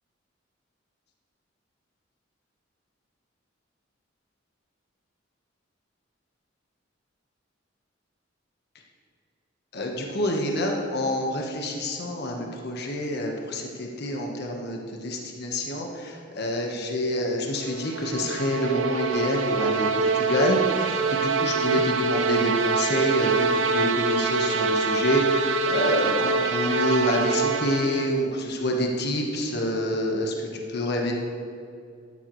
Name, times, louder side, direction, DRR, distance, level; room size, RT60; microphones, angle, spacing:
voice 1, 9.7-31.1, equal, 60° left, 0 dB, 1.3 m, -27 dB
sound 1, 17.6-28.2, right 4 dB, 85° right, 0.6 m, -25 dB
12.0 x 11.5 x 3.2 m, 2.4 s
head